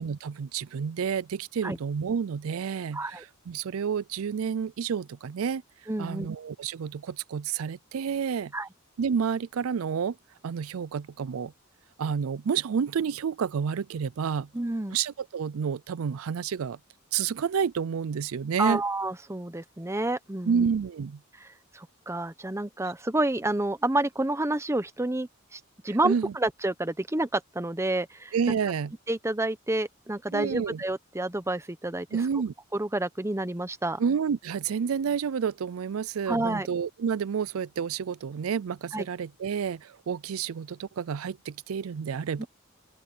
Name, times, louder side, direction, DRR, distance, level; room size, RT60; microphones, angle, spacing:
voice 1, 0.0-5.6 6.0-8.5 9.0-10.2 10.4-11.5 12.0-14.5 14.9-16.8 17.1-18.8 20.5-21.2 25.9-26.3 28.3-28.9 30.3-30.8 32.1-32.5 34.0-42.5, right 6 dB, 85° right, 0.4 m, -29 dB
voice 2, 2.9-3.2 5.9-6.3 8.5-8.7 14.5-15.0 18.6-20.7 21.4-21.5 21.7-28.3 29.1-32.2 32.7-34.0 36.3-36.7 38.9-39.1 42.4-42.5, right 2 dB, 15° right, 0.9 m, -29 dB
open air
head